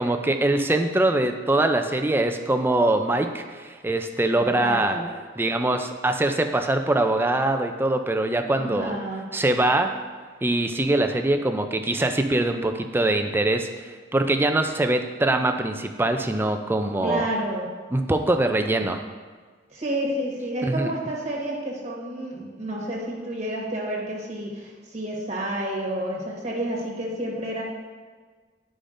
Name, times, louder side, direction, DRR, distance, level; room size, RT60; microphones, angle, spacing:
voice 1, 0.0-5.0 5.4-9.0 9.3-9.9 10.4-17.3 17.9-19.0 20.6-20.9, right 2 dB, 10° right, 6 dB, 0.4 m, -23 dB
voice 2, 4.3-5.1 8.6-9.2 17.0-17.7 19.7-27.6, right 1 dB, 35° right, -3 dB, 1.4 m, -30 dB
11.5 x 5.0 x 2.5 m, 1.5 s
head